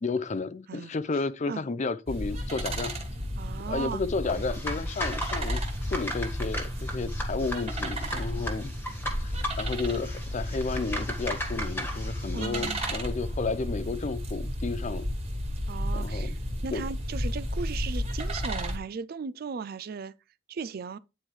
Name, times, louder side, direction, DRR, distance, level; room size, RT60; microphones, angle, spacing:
voice 1, 0.0-2.9 3.7-5.6 5.9-8.7 9.2-15.0 15.9-16.4 16.7-16.8, left 4 dB, 40° left, 0.5 m, -32 dB
sound 1, 2.1-18.8, equal, 35° right, 1.7 m, -33 dB
voice 2, 3.4-4.0 12.3-12.9 15.7-20.1 20.5-21.0, right 5 dB, 55° right, 0.4 m, -37 dB
sound 2, 4.2-13.0, equal, 10° left, 1.5 m, -37 dB
9.2 x 4.4 x 3.2 m
head